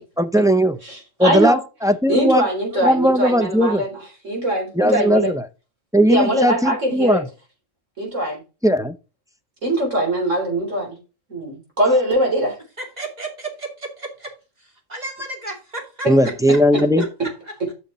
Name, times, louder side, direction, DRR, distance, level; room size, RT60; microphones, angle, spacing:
voice 1, 0.2-0.8 1.2-2.5 2.8-3.8 4.8-5.4 5.9-7.2 8.6-8.9 16.1-17.0, equal, 5° right, 0.3 m, -17 dB
voice 2, 0.8-1.6 2.1-3.9 4.2-5.3 6.1-7.2 8.0-8.4 9.6-11.0 11.3-12.6, right 1 dB, 70° right, 3.9 m, -21 dB
voice 3, 12.8-14.3 14.6-16.1 16.5-16.6 17.0-17.7, right 2 dB, 30° right, 2.8 m, -34 dB
9.1 x 6.5 x 4.2 m
omnidirectional pair, 1.3 m